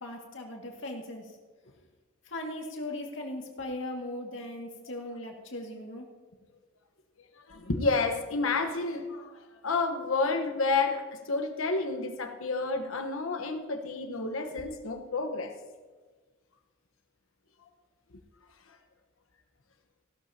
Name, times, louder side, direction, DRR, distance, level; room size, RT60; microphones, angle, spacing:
voice 1, 0.0-1.4 2.2-6.1, left 1 dB, 65° left, 1 dB, 2.1 m, -38 dB
voice 2, 7.5-9.3 9.6-15.5, left 3 dB, 85° left, 5 dB, 1.2 m, -30 dB
16.5 x 12.0 x 2.9 m, 1.4 s
head